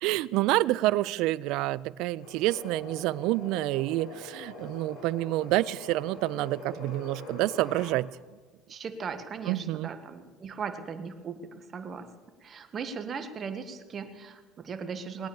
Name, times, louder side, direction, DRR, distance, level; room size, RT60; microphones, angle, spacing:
voice 1, 0.0-8.1 9.5-9.9, right 17 dB, 70° right, 21 dB, 0.4 m, -28 dB
sound 1, 2.2-8.0, left 2 dB, 55° left, 7.1 m, -44 dB
voice 2, 8.7-12.1 12.4-15.3, right 6 dB, 35° right, 8 dB, 1.6 m, -38 dB
20.0 x 9.1 x 7.2 m, 1.3 s
supercardioid pair, 110°, 0 cm